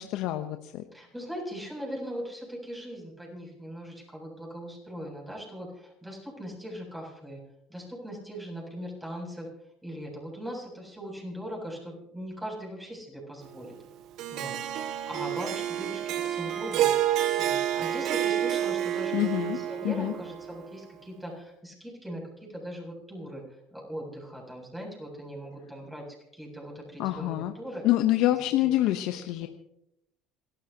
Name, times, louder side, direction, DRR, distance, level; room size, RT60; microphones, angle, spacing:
voice 1, 0.0-0.8 19.1-19.6 19.8-20.1 27.0-27.5 27.8-29.5, left 14 dB, 70° left, 7 dB, 0.9 m, -26 dB
voice 2, 0.9-7.4 7.7-9.5 9.8-13.7 14.3-14.6 15.1-16.0 16.3-16.9 17.4-26.0 26.3-27.8 28.6-28.8 29.4-29.5, equal, 5° right, -1 dB, 7.7 m, -40 dB
Harp, 14.2-20.5, right 11 dB, 65° right, 1.2 m, -29 dB
27.5 x 13.5 x 2.9 m, 0.83 s
supercardioid pair, 85°, 0 cm